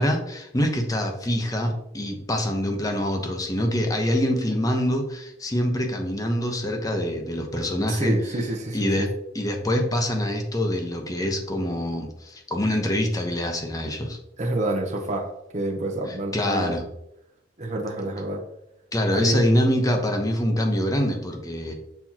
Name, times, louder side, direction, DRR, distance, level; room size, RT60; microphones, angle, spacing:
voice 1, 0.0-8.1 8.7-9.1 9.3-14.2 16.3-16.8 18.9-21.7, equal, 20° left, 3 dB, 0.9 m, -25 dB
voice 2, 7.9-9.1 14.4-16.8 17.6-18.4 19.1-19.4, right 1 dB, 40° right, 1 dB, 0.9 m, -28 dB
6.9 x 5.8 x 2.9 m, 0.85 s
head